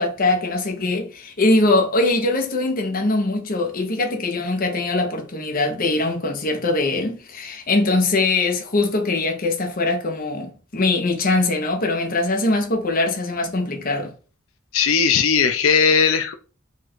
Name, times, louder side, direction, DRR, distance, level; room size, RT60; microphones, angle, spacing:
voice 1, 0.0-14.1, left 2 dB, 45° left, 1.0 m, -22 dB
voice 2, 14.7-16.3, left 6 dB, 70° left, 0.5 m, -17 dB
4.4 x 2.5 x 4.4 m
head